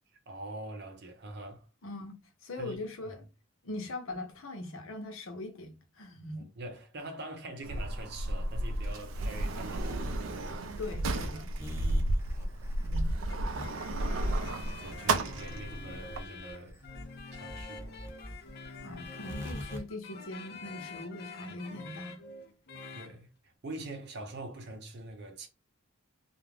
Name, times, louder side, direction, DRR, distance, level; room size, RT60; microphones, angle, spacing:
voice 1, 0.3-1.7 2.6-3.2 6.3-10.1 11.8-12.7 14.8-16.8 17.3-18.0 22.9-25.5, right 2 dB, 55° right, 0.8 m, -44 dB
voice 2, 1.8-2.2 2.4-3.2 3.6-6.5 10.8-11.5 12.8-13.2 18.8-22.2, left 2 dB, 85° left, 0.8 m, -41 dB
Sliding door, 7.6-16.2, right 2 dB, 75° right, 0.4 m, -32 dB
sound 1, 8.8-19.8, equal, 15° right, 0.7 m, -44 dB
sound 2, 13.3-23.2, left 4 dB, 55° left, 0.5 m, -47 dB
2.4 x 2.1 x 3.2 m
head